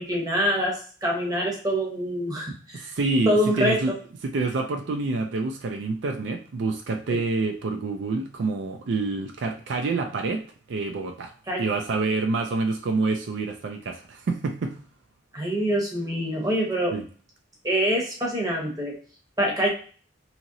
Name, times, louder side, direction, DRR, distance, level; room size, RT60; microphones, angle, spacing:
voice 1, 0.0-2.9 3.3-3.8 7.1-7.2 11.5-11.6 15.3-16.9 17.6-18.9 19.4-19.7, equal, 20° right, -1 dB, 0.8 m, -25 dB
voice 2, 2.7-3.9 4.2-10.4 10.7-14.8 16.9-17.0, right 3 dB, 65° right, 4 dB, 0.4 m, -27 dB
2.8 x 2.8 x 2.6 m, 0.42 s
head